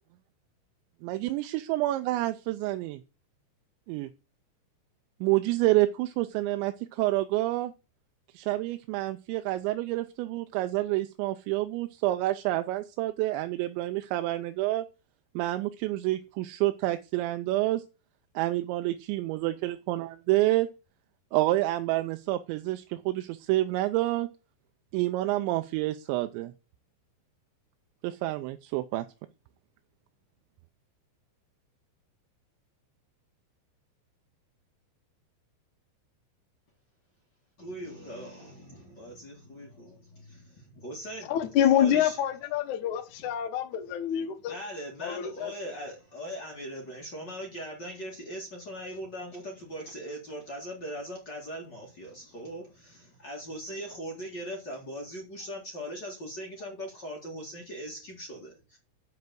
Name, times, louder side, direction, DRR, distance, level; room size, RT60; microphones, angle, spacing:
voice 1, 1.0-3.0 3.9-4.1 5.2-7.7 8.3-14.9 15.4-17.8 18.4-20.7 21.3-24.3 24.9-26.5 28.0-29.1, right 17 dB, 85° right, 2.8 m, -28 dB
voice 2, 37.6-41.3 41.7-42.2 44.5-58.8, equal, 40° left, 1.6 m, -40 dB
voice 3, 41.3-44.6 45.0-45.5, left 10 dB, 65° left, 1.9 m, -26 dB
7.9 x 5.4 x 7.7 m
omnidirectional pair, 5.3 m